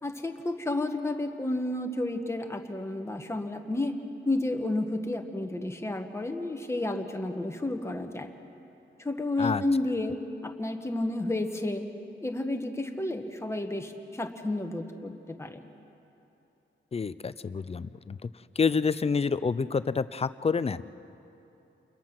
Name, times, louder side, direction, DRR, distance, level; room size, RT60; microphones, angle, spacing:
voice 1, 0.0-3.9 4.2-8.3 9.0-10.2 10.4-11.9 12.2-15.6, left 2 dB, 15° left, 4 dB, 1.3 m, -31 dB
voice 2, 16.9-18.2 18.6-20.9, left 5 dB, 30° left, 15 dB, 0.4 m, -28 dB
29.0 x 21.5 x 6.0 m, 2.9 s
wide cardioid pair, 175°, 20 cm